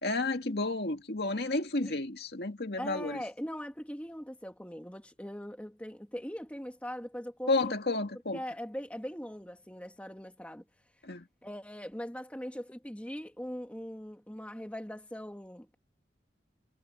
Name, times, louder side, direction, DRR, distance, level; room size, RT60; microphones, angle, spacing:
voice 1, 0.0-3.2 7.5-8.4 11.0-11.3, left 2 dB, 65° left, 2.1 m, -31 dB
voice 2, 2.8-7.7 8.3-10.7 11.4-15.7, equal, 10° left, 1.8 m, -41 dB
head